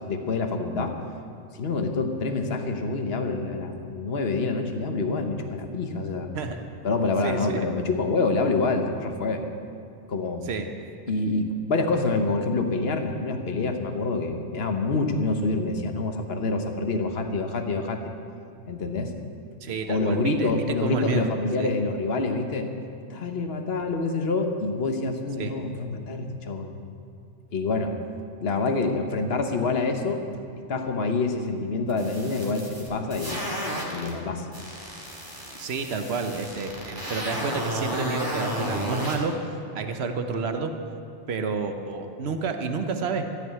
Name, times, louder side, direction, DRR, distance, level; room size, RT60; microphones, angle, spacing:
voice 1, 0.1-1.0 1.5-6.3 6.8-9.4 10.1-10.4 11.1-18.0 18.7-19.1 19.9-22.7 23.1-26.7 27.5-27.9 28.4-30.2 30.7-33.4 33.9-34.5, left 3 dB, 60° left, 5 dB, 1.3 m, -26 dB
voice 2, 7.2-7.7 10.4-10.7 19.6-21.3 21.6-21.7 25.4-25.5 35.6-39.4 39.7-40.7 41.3-43.2, right 4 dB, 65° right, 6 dB, 1.2 m, -29 dB
sound 1, 31.9-34.1 34.5-39.2, equal, 20° right, 2.1 m, -32 dB
14.0 x 6.5 x 9.2 m, 2.4 s
omnidirectional pair, 1.2 m